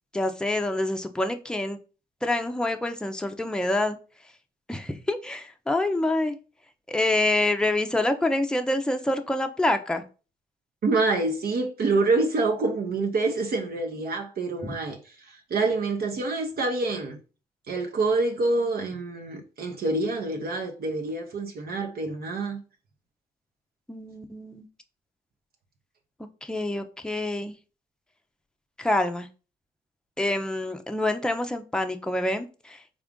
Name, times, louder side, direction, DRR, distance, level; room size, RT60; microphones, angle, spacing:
voice 1, 0.1-1.8 2.2-4.0 4.7-6.4 6.9-10.0 14.6-14.7 23.9-24.7 26.4-27.5 28.8-29.3 30.2-32.8, left 2 dB, 5° left, 0.6 m, -26 dB
voice 2, 10.8-17.2 17.7-22.6, right 3 dB, 55° right, 0.7 m, -26 dB
3.6 x 2.4 x 3.6 m
hypercardioid pair, 50°, 19 cm